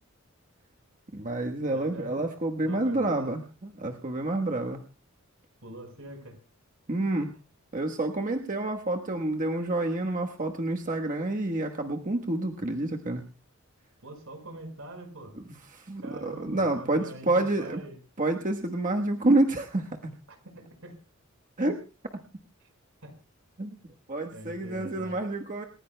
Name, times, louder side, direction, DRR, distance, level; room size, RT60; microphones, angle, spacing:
voice 1, 1.1-4.8 6.9-7.3 7.7-13.2 15.7-17.8 18.2-20.1 21.6-21.8 22.1-22.2 23.6-23.8 24.1-25.6, right 2 dB, 40° right, 3 dB, 1.2 m, -28 dB
voice 2, 1.7-2.2 2.6-3.3 5.6-6.4 14.0-15.4 16.0-18.0 20.3-21.0 23.0-23.1 24.3-25.2, right 1 dB, 80° right, 5 dB, 5.0 m, -44 dB
28.0 x 15.5 x 2.2 m, 0.32 s
head